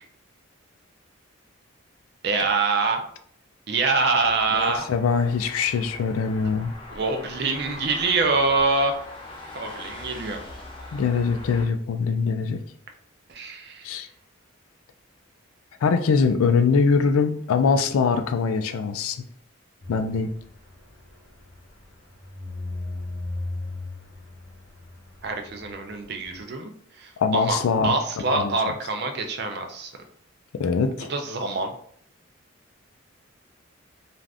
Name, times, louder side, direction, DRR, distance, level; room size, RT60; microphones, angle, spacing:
voice 1, 2.2-3.0 3.7-4.9 6.9-9.0 9.5-10.4 13.3-13.9 25.2-26.7 27.0-29.9 31.1-31.7, right 3 dB, 50° right, 5 dB, 0.4 m, -25 dB
sound 1, 4.2-11.7, left 2 dB, 25° left, 0.5 m, -41 dB
voice 2, 4.5-6.7 10.9-12.6 13.8-14.1 15.8-19.2 19.9-20.3 27.2-27.9 28.3-28.5 30.5-31.1, left 5 dB, 90° left, 8 dB, 0.3 m, -23 dB
sound 2, 19.8-26.4, left 2 dB, 55° left, 0.8 m, -37 dB
2.5 x 2.4 x 3.3 m, 0.62 s
head